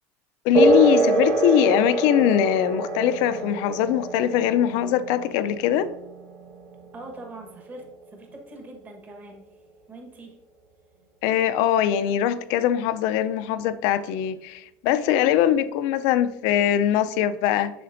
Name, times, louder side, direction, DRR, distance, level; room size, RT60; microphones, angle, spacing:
voice 1, 0.4-5.9 11.2-17.7, left 11 dB, 65° left, 0.5 m, -22 dB
sound 1, 0.5-8.6, right 3 dB, 55° right, 1.4 m, -25 dB
voice 2, 6.9-9.4 9.9-10.4, right 2 dB, 25° right, 1.3 m, -42 dB
7.6 x 6.5 x 2.6 m
supercardioid pair, 125°, 7 cm